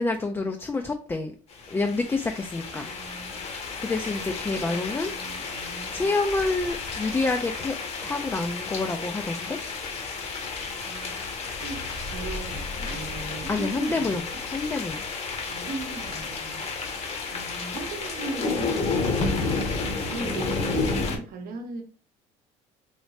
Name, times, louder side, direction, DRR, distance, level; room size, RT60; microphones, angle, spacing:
voice 1, 0.0-1.3 1.7-2.9 3.6-5.1 5.9-7.8 8.0-9.6 13.5-15.0, left 3 dB, 15° left, 4 dB, 0.3 m, -28 dB
sound 1, 1.5-21.2, left 4 dB, 40° left, 0.8 m, -31 dB
voice 2, 2.7-3.4 4.6-6.2 10.8-11.3 11.6-14.2 15.5-16.6 17.3-21.8, right 3 dB, 60° right, 5 dB, 0.8 m, -39 dB
3.2 x 3.0 x 2.8 m, 0.40 s
supercardioid pair, 100°, 17 cm